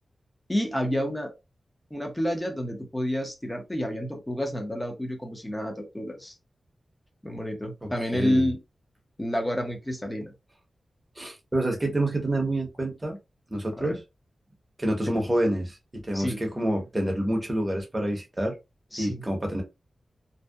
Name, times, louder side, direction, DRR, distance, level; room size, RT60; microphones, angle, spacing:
voice 1, 0.5-1.3 1.9-6.3 7.2-8.6 9.2-10.3 13.8-14.0 15.1-15.2 16.1-16.4 18.9-19.2, equal, 10° left, 2 dB, 0.6 m, -29 dB
voice 2, 7.8-8.5 11.2-13.2 13.5-14.0 14.8-18.6 19.0-19.6, right 1 dB, 20° right, 2 dB, 0.8 m, -28 dB
2.7 x 2.1 x 2.2 m, 0.24 s
wide cardioid pair, 130°, 0 cm